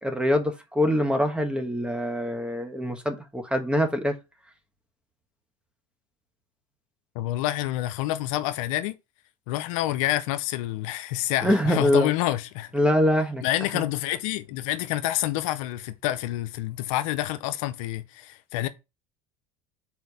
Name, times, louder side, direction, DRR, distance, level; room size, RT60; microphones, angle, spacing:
voice 1, 0.0-4.1 11.4-12.1 12.7-13.4 13.7-13.8, equal, 5° right, 1.3 m, -24 dB
voice 2, 7.2-9.0 9.5-12.7 13.4-18.7, left 15 dB, 75° left, 0.6 m, -28 dB
4.6 x 4.2 x 5.3 m
supercardioid pair, 90°, 17 cm